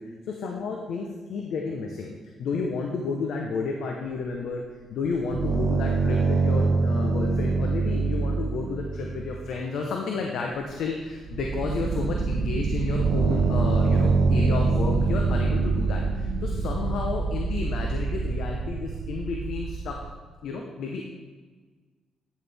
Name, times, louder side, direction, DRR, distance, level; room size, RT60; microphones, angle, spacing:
voice 1, 0.0-2.1 2.4-4.6 4.9-20.0 20.4-21.0, left 4 dB, 75° left, 1 dB, 0.9 m, -31 dB
sound 1, 5.0-9.5 10.5-10.6 11.0-20.1, right 4 dB, 75° right, 0.7 m, -25 dB
9.9 x 7.2 x 3.5 m, 1.4 s
cardioid pair, 90°, 0 cm